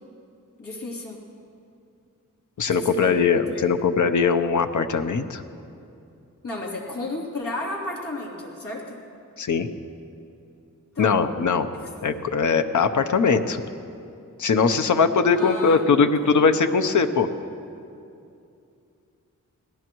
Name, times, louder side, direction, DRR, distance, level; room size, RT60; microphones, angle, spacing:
voice 1, 0.6-1.2 2.7-3.7 6.4-9.0 10.9-11.2 15.3-16.5, left 2 dB, 90° left, -4 dB, 3.2 m, -33 dB
voice 2, 2.6-5.4 9.4-9.7 11.0-11.7 12.0-13.6 14.4-17.3, left 5 dB, 65° left, 8 dB, 0.8 m, -21 dB
25.5 x 18.0 x 3.1 m, 2.6 s
wide cardioid pair, 180°, 32 cm